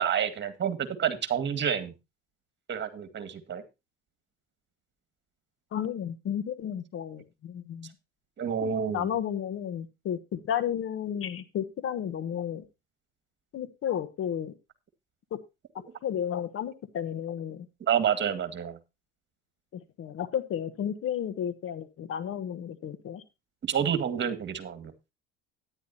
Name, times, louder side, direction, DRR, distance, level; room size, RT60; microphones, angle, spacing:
voice 1, 0.0-1.9 2.7-3.6 8.4-9.1 17.9-18.8 23.6-24.9, right 8 dB, 40° right, 9 dB, 2.1 m, -28 dB
voice 2, 5.7-7.9 8.6-12.6 13.5-14.5 15.3-15.4 16.0-17.7 19.7-23.2, left 9 dB, 45° left, 13 dB, 1.2 m, -33 dB
13.5 x 10.5 x 2.8 m, 0.26 s
hypercardioid pair, 80°, 30 cm